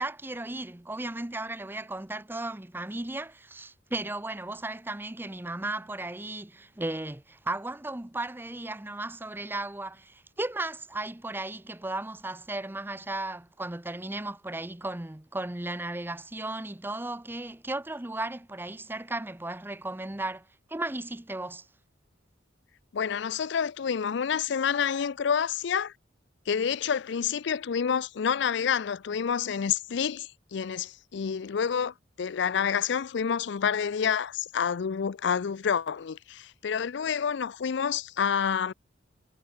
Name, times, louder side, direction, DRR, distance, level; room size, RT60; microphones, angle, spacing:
voice 1, 0.0-21.6, right 2 dB, 10° right, 0.7 m, -35 dB
voice 2, 22.9-25.9 26.5-38.7, left 7 dB, 65° left, 0.4 m, -28 dB
head